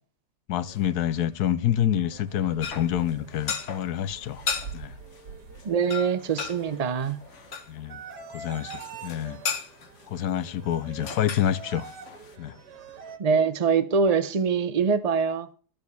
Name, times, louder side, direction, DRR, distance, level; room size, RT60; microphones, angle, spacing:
voice 1, 0.5-4.4 4.7-4.9 7.7-8.0 8.3-9.4 10.1-11.9 12.4-12.6, left 10 dB, 70° left, 1.3 m, -27 dB
sound 1, 0.6-13.2, right 5 dB, 75° right, 2.2 m, -45 dB
sound 2, 2.6-3.9 4.3-4.7 5.1-5.3 5.6-5.7 5.9-7.7 8.7-10.1 10.7-10.8 11.0-12.3, left 6 dB, 50° left, 1.3 m, -35 dB
voice 2, 5.6-7.2 13.2-15.5, right 5 dB, 60° right, 0.4 m, -24 dB
13.5 x 5.3 x 8.0 m
omnidirectional pair, 1.8 m